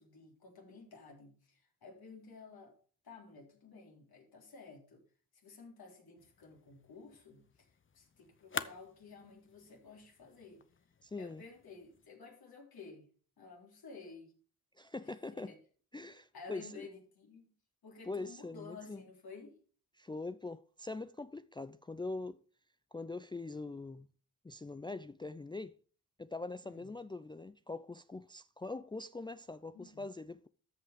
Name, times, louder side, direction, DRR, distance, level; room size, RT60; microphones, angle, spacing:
voice 1, 0.0-2.7 3.0-5.0 5.4-7.7 7.9-10.7 11.2-13.1 13.4-14.3 15.0-15.6 16.3-17.5 17.8-19.6 26.6-26.9 29.7-30.1, left 4 dB, 70° left, 3.8 m, -53 dB
sound 1, 6.2-12.1, left 6 dB, 30° left, 0.8 m, -48 dB
voice 2, 11.0-11.4 14.8-15.5 15.9-16.9 18.0-19.0 19.9-22.4 22.9-24.1 24.4-25.7 26.2-30.5, left 3 dB, 10° left, 0.4 m, -43 dB
13.5 x 5.7 x 5.1 m
cardioid pair, 60°, 38 cm